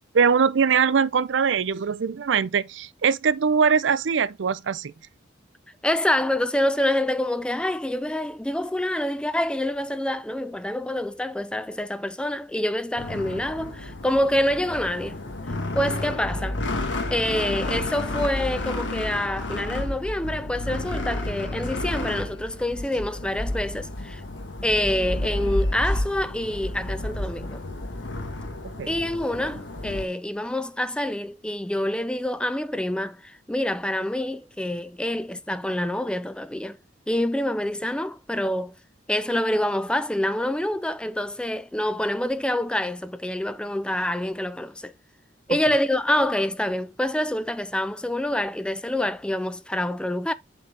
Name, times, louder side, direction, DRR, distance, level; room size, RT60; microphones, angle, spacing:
voice 1, 0.1-4.9 28.6-28.9, right 6 dB, 80° right, 0.5 m, -22 dB
voice 2, 5.8-15.2 15.5-16.6 17.1-24.2 24.6-27.6 28.9-36.8 37.1-38.7 39.1-44.9 45.5-50.3, left 1 dB, 5° left, 0.4 m, -26 dB
sound 1, 13.0-30.1, left 1 dB, 80° left, 1.4 m, -31 dB
7.9 x 4.0 x 3.3 m
head